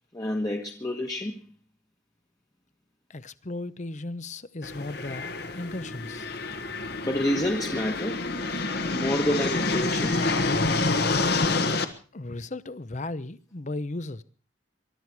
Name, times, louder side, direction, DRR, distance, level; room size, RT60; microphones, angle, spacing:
voice 1, 0.1-1.4 7.0-8.3 8.8-10.3, left 1 dB, 20° left, 1.4 m, -29 dB
voice 2, 3.1-6.3 12.1-14.2, left 2 dB, 40° left, 0.8 m, -36 dB
sound 1, 4.6-11.8, left 3 dB, 60° left, 1.5 m, -27 dB
22.5 x 12.5 x 4.7 m
head